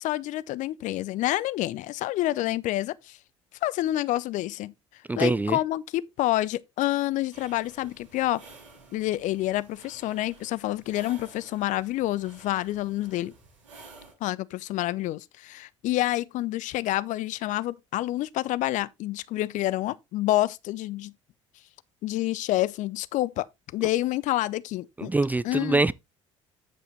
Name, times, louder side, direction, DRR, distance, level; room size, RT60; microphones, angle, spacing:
voice 1, 0.0-3.2 3.6-4.7 5.2-8.4 8.9-13.3 14.2-21.1 22.0-23.5 23.7-25.1 25.4-25.8, left 15 dB, 50° left, 0.5 m, -28 dB
voice 2, 5.1-5.6 25.0-25.9, right 2 dB, 10° right, 0.4 m, -24 dB
sound 1, 7.3-14.1, right 3 dB, 75° right, 6.0 m, -52 dB
8.9 x 7.7 x 3.0 m
figure-of-eight pair, 55°, 16 cm